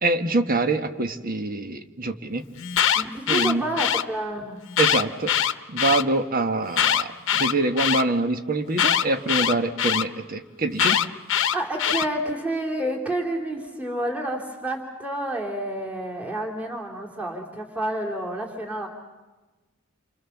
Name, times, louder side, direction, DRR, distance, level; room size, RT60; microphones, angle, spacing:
voice 1, 0.0-2.4 3.3-3.7 4.8-5.3 5.7-11.0, right 2 dB, 45° right, 7 dB, 1.5 m, -25 dB
Alarm, 2.6-4.0 4.7-6.0 6.7-8.0 8.8-10.0 10.8-12.1, left 9 dB, 65° left, 0.9 m, -22 dB
voice 2, 2.9-4.6 11.5-18.9, right 1 dB, 5° right, -1 dB, 3.2 m, -29 dB
29.5 x 26.0 x 7.3 m, 1.2 s
head